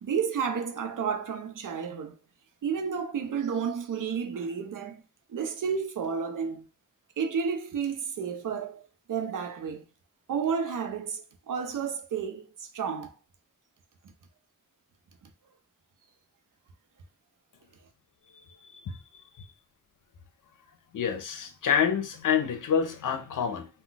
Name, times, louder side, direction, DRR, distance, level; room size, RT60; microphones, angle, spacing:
voice 1, 0.0-2.1 2.6-5.0 5.3-6.7 7.2-8.8 9.1-9.8 10.3-13.1, right 6 dB, 75° right, 0.6 m, -31 dB
voice 2, 20.9-23.7, left 7 dB, 75° left, 0.6 m, -27 dB
2.3 x 2.2 x 3.8 m
wide cardioid pair, 145°, 32 cm